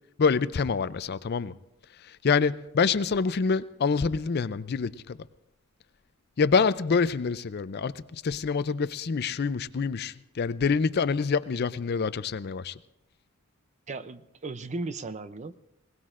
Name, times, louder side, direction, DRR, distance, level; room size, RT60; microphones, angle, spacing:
voice 1, 0.2-1.5 2.0-5.2 6.4-12.8, left 5 dB, 50° left, 15 dB, 0.4 m, -26 dB
voice 2, 13.9-15.6, right 3 dB, 35° right, 13 dB, 0.5 m, -36 dB
21.0 x 18.5 x 2.5 m, 0.85 s
head